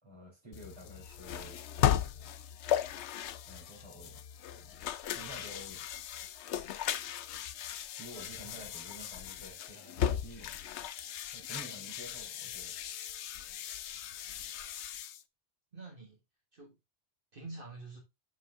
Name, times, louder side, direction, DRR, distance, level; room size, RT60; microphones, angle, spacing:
voice 1, 0.0-1.6 3.4-4.2 4.5-4.9 5.1-5.9 8.0-10.6 11.3-12.7, right 1 dB, 25° right, 3.9 m, -50 dB
sound 1, 0.5-15.2, left 10 dB, 85° left, 0.9 m, -36 dB
voice 2, 8.4-9.0 12.4-12.5 15.7-16.2 16.5-16.8 17.3-18.0, right 3 dB, 55° right, 1.8 m, -48 dB
6.0 x 5.7 x 3.6 m
omnidirectional pair, 1.1 m